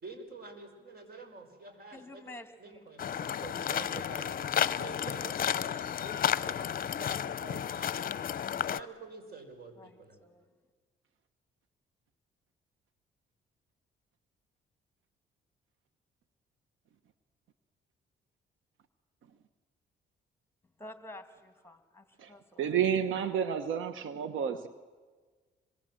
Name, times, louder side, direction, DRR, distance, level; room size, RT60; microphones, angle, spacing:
voice 1, 0.0-2.3 2.6-8.2 8.5-10.2, right 3 dB, 50° right, 6 dB, 5.6 m, -48 dB
voice 2, 1.9-2.9 9.8-10.4 20.8-22.8, left 2 dB, 10° left, 8 dB, 2.4 m, -50 dB
sound 1, 3.0-8.8, left 9 dB, 45° left, 0.7 m, -32 dB
voice 3, 22.2-24.7, right 8 dB, 80° right, 11 dB, 1.2 m, -31 dB
26.5 x 23.0 x 7.7 m, 1.4 s
cardioid pair, 90°, 20 cm